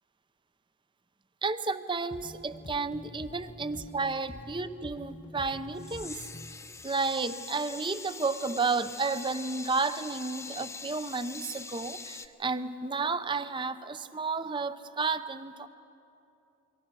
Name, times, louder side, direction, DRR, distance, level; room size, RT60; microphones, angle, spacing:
voice 1, 1.4-6.3 6.8-15.7, right 4 dB, 20° right, 12 dB, 0.6 m, -32 dB
sound 1, 2.1-6.6, left 1 dB, 35° left, 1.2 m, -46 dB
sound 2, 5.8-12.3, left 4 dB, 15° left, 0.7 m, -43 dB
28.5 x 23.5 x 6.2 m, 2.9 s
head